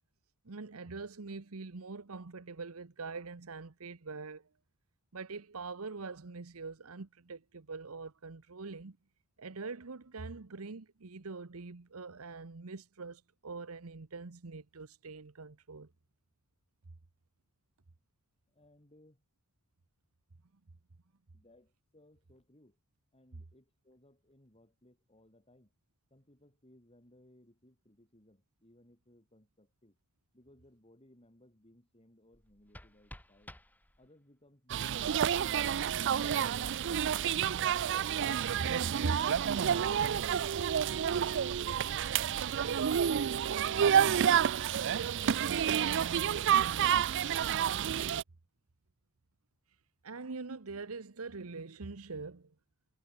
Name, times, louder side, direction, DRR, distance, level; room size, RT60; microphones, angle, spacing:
voice 1, 0.4-4.5 5.1-9.0 9.4-15.9 38.6-38.7 39.0-39.2 50.0-52.5, right 3 dB, 75° right, 1.0 m, -43 dB
voice 2, 18.5-19.2 21.3-22.8 23.1-25.7 26.1-30.0 30.3-33.6 34.0-35.9, left 1 dB, 25° left, 5.2 m, -63 dB
sound 1, 32.3-34.3, left 1 dB, 10° left, 3.4 m, -54 dB
sound 2, 34.7-48.2, right 8 dB, 55° right, 0.4 m, -29 dB
head